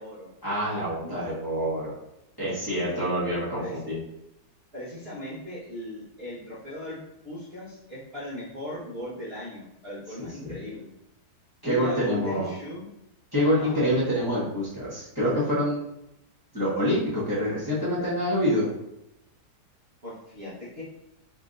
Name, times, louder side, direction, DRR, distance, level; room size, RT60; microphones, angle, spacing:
voice 1, 0.4-1.9 2.4-4.0 10.2-10.5 11.6-12.5 13.3-15.8 16.5-18.7, equal, 15° left, -12 dB, 1.4 m, -26 dB
voice 2, 2.7-3.1 3.6-3.8 4.7-7.0 7.2-10.9 11.7-12.9 13.6-13.8 20.0-20.8, equal, 40° right, -10 dB, 1.3 m, -38 dB
3.8 x 3.6 x 2.6 m, 0.86 s
omnidirectional pair, 1.8 m